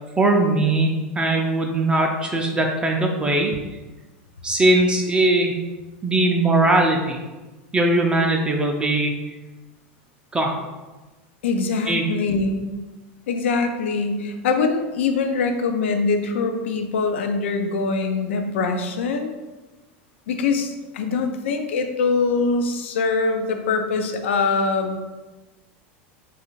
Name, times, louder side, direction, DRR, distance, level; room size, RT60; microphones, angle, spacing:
voice 1, 0.2-3.5 4.4-5.5 6.0-7.2 7.7-9.2 10.3-10.5 11.9-12.1, right 2 dB, 15° right, 1 dB, 0.3 m, -20 dB
voice 2, 11.4-12.6 13.3-19.3 20.3-25.0, left 4 dB, 90° left, 6 dB, 0.3 m, -23 dB
2.4 x 2.4 x 3.0 m, 1.2 s
supercardioid pair, 110°, 6 cm